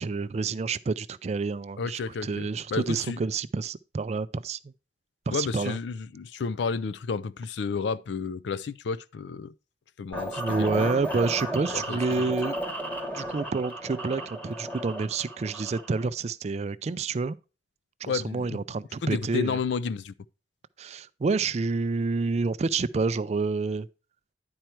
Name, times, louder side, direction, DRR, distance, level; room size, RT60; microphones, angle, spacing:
voice 1, 0.0-4.7 5.3-5.8 10.4-12.5 13.1-17.4 18.0-19.6 20.8-23.9, right 4 dB, 40° right, 0.4 m, -28 dB
voice 2, 1.8-3.2 5.3-9.5 10.0-10.9 11.7-12.0 18.0-18.6 19.0-20.1, left 5 dB, 80° left, 0.4 m, -31 dB
sound 1, 10.1-16.1, right 1 dB, 10° left, 1.3 m, -34 dB
10.5 x 4.5 x 4.4 m
head